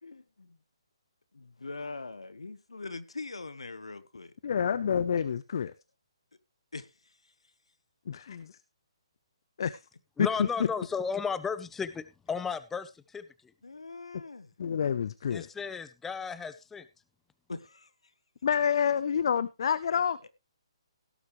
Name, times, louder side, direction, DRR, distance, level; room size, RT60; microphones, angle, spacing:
voice 1, 0.0-0.6 1.3-4.3 6.7-7.2 9.6-9.7 13.6-14.5 17.5-17.9 19.9-20.3, left 3 dB, 80° left, 1.3 m, -42 dB
voice 2, 4.4-5.7 8.1-8.6 9.6-9.8 10.2-10.5 14.6-15.5 18.4-20.2, left 7 dB, 55° left, 0.6 m, -28 dB
voice 3, 10.2-13.2 15.3-16.9, left 5 dB, 10° left, 0.7 m, -34 dB
17.0 x 8.3 x 3.2 m
figure-of-eight pair, 140°, 3 cm